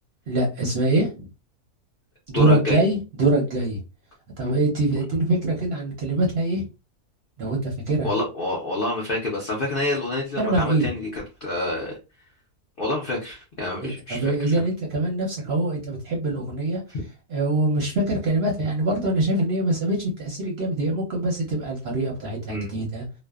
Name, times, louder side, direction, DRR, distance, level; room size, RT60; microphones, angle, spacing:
voice 1, 0.3-1.3 2.3-3.8 4.4-6.6 7.4-8.1 10.4-10.9 13.8-16.8 17.3-23.0, right 2 dB, 55° right, 0.7 m, -24 dB
voice 2, 2.3-2.8 8.0-12.0 12.8-14.6 16.9-17.0 22.5-22.7, left 1 dB, 65° left, 0.5 m, -27 dB
2.5 x 2.1 x 2.3 m
omnidirectional pair, 1.7 m